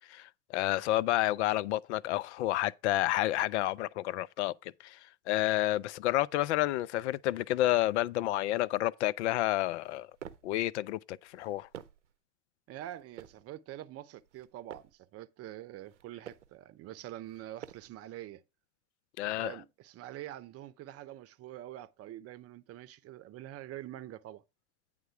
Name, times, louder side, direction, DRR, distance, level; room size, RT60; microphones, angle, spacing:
voice 1, 0.0-5.0 5.3-10.1 10.4-11.7 19.2-19.6, left 15 dB, 75° left, 0.5 m, -30 dB
sound 1, 9.8-10.6 11.3-12.1 12.8-13.5 14.2-15.0 15.8-16.6 17.2-18.0, right 9 dB, 90° right, 0.7 m, -50 dB
voice 2, 12.7-18.4 19.3-24.4, right 13 dB, 45° right, 0.7 m, -45 dB
9.2 x 3.7 x 5.8 m
hypercardioid pair, 80°, 35 cm